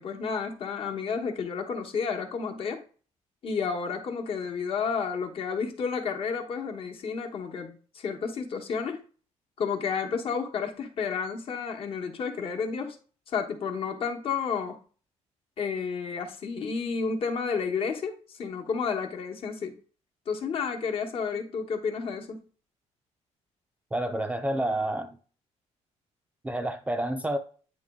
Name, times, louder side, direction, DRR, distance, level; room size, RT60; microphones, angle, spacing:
voice 1, 0.0-2.8 3.4-9.0 9.6-13.0 13.3-14.8 15.6-19.7 20.3-22.4, left 5 dB, 50° left, 1.1 m, -31 dB
voice 2, 23.9-25.2 26.4-27.4, right 1 dB, 10° right, 0.4 m, -29 dB
9.0 x 3.0 x 3.6 m
cardioid pair, 155°, 12 cm